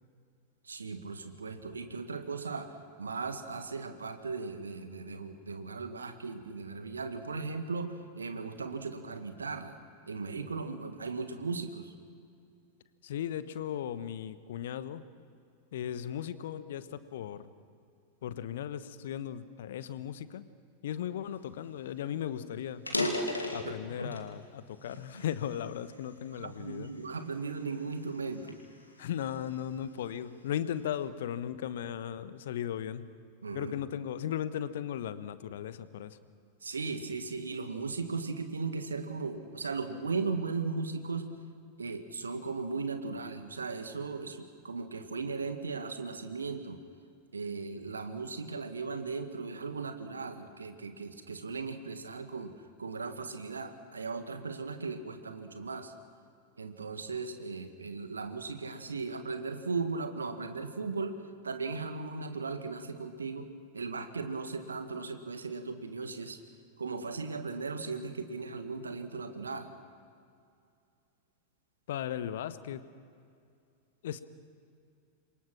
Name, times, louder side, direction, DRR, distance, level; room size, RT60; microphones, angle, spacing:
voice 1, 0.6-2.7 3.0-9.8 10.1-11.9 23.6-23.7 26.4-28.6 33.4-33.7 36.6-41.3 41.8-46.8 47.3-52.5 52.8-55.9 56.6-61.1 61.4-63.5 63.7-66.4 66.8-69.7, right 4 dB, 75° right, 8 dB, 1.8 m, -37 dB
voice 2, 13.0-15.0 15.7-17.5 18.2-20.4 20.8-22.9 23.5-26.9 29.0-33.1 33.5-36.2 71.9-72.9 74.0-74.2, left 10 dB, 60° left, 14 dB, 1.1 m, -37 dB
sound 1, 21.7-21.8 22.1-22.2 22.7-24.3 24.9-26.1 26.7-27.0 27.6-29.6, left 2 dB, 80° left, 2.3 m, -35 dB
27.5 x 23.0 x 6.0 m, 2.4 s
figure-of-eight pair, 90°, 0 cm